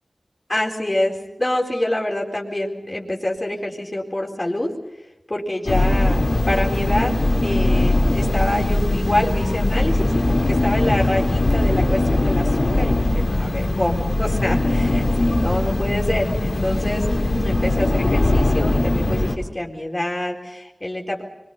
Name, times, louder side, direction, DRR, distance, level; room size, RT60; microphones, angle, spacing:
voice 1, 0.5-4.7 5.3-17.0 17.4-21.2, left 1 dB, 25° left, -1 dB, 4.2 m, -26 dB
sound 1, 5.7-19.3, left 2 dB, 85° left, 4.0 m, -20 dB
26.0 x 23.5 x 5.6 m, 0.98 s
wide cardioid pair, 75°, 0 cm